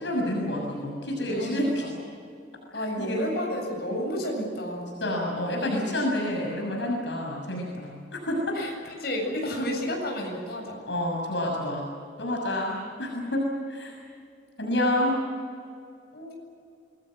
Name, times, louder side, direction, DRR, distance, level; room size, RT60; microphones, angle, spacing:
voice 1, 0.0-1.8 2.7-3.3 5.0-7.9 8.3-8.6 10.8-11.8 12.2-14.0 14.6-15.2, left 1 dB, 75° left, 0 dB, 6.6 m, -28 dB
voice 2, 1.3-1.9 2.7-5.0 8.5-8.7 9.0-10.8 16.1-16.3, equal, 60° left, 1 dB, 7.8 m, -31 dB
27.5 x 21.0 x 7.8 m, 2.3 s
head